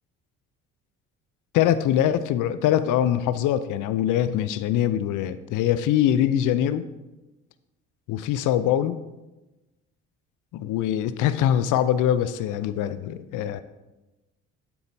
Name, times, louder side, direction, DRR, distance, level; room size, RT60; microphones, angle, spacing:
voice 1, 1.5-6.8 8.1-9.0 10.5-13.6, left 10 dB, 55° left, 13 dB, 0.6 m, -23 dB
8.6 x 7.9 x 2.7 m, 1.1 s
hypercardioid pair, 50°, 37 cm